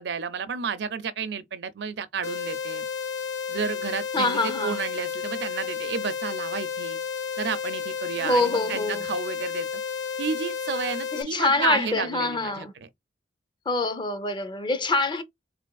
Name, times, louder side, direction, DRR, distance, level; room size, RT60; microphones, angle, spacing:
voice 1, 0.0-2.8 3.5-7.0 7.4-9.7 10.2-12.9, right 6 dB, 65° right, 0.5 m, -31 dB
sound 1, 2.2-11.2, left 6 dB, 90° left, 0.5 m, -32 dB
voice 2, 4.1-4.8 8.2-9.1 11.1-12.7 13.7-15.2, left 2 dB, 25° left, 0.6 m, -25 dB
3.6 x 3.3 x 2.3 m
head